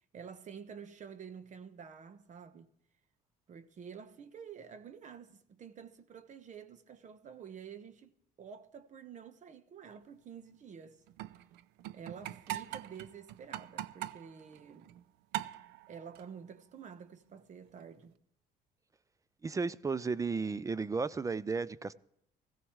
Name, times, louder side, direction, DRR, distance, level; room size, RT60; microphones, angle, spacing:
voice 1, 0.1-2.7 3.5-8.1 8.4-11.0 11.9-15.0 15.9-18.2, right 7 dB, 45° right, 1.1 m, -49 dB
sound 1, 11.1-15.0 15.3-16.4 17.6-17.9, right 14 dB, 90° right, 0.5 m, -43 dB
voice 2, 19.4-21.9, right 4 dB, 20° right, 0.4 m, -34 dB
17.0 x 15.5 x 3.2 m
cardioid pair, 110°, 17 cm